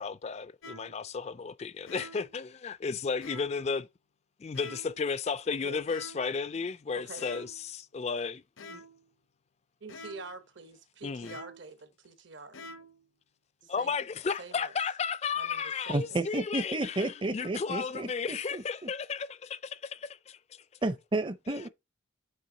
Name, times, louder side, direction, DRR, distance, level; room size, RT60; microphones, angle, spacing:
voice 1, 0.0-3.9 4.4-8.4 8.7-8.8 11.0-11.3 13.7-20.4, left 5 dB, 30° left, 0.3 m, -34 dB
sound 1, 0.6-1.1 1.9-2.4 3.2-3.7 4.5-5.0 5.9-6.4 7.2-7.7 8.6-9.1 9.9-10.4 11.2-11.8 12.5-13.0, left 1 dB, 80° left, 0.8 m, -47 dB
voice 2, 5.5-5.8 6.9-7.3 9.8-12.6 13.6-14.0 14.4-14.7 15.4-16.2, right 3 dB, 65° right, 1.1 m, -46 dB
voice 3, 15.9-18.9 20.8-21.7, right 2 dB, 25° right, 0.6 m, -32 dB
8.5 x 3.5 x 3.8 m
head